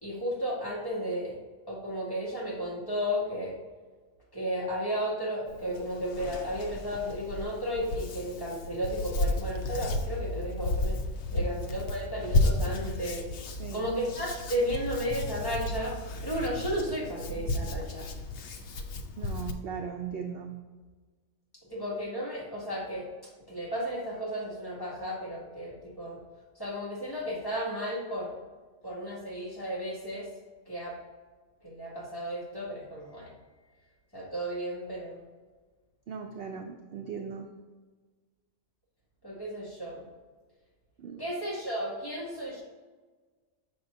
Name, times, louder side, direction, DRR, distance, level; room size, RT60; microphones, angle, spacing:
voice 1, 0.0-1.4 1.7-3.5 4.3-11.0 11.3-13.3 13.7-18.1 18.9-19.0 21.7-23.1 23.5-26.2 26.6-28.3 28.8-30.3 30.7-31.0 31.6-33.3 34.1-35.2 39.2-40.0 41.2-42.6, equal, 15° left, -6 dB, 1.8 m, -34 dB
Hands, 5.5-19.5, left 2 dB, 65° left, 0.8 m, -33 dB
voice 2, 19.2-20.6 36.1-37.5 41.0-41.2, right 6 dB, 60° right, 4 dB, 0.6 m, -38 dB
6.8 x 6.1 x 2.6 m, 1.4 s
omnidirectional pair, 1.4 m